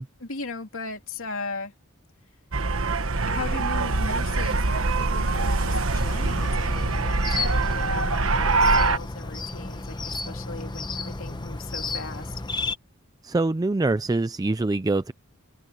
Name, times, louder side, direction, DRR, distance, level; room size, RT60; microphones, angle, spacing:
voice 1, 0.2-1.7 3.3-12.4, left 3 dB, 70° left, 3.3 m, -37 dB
sound 1, 2.5-9.0, right 3 dB, 75° right, 1.3 m, -24 dB
sound 2, 6.0-12.8, left 3 dB, 20° left, 0.9 m, -33 dB
voice 2, 13.2-15.1, right 2 dB, 20° right, 0.4 m, -24 dB
open air
head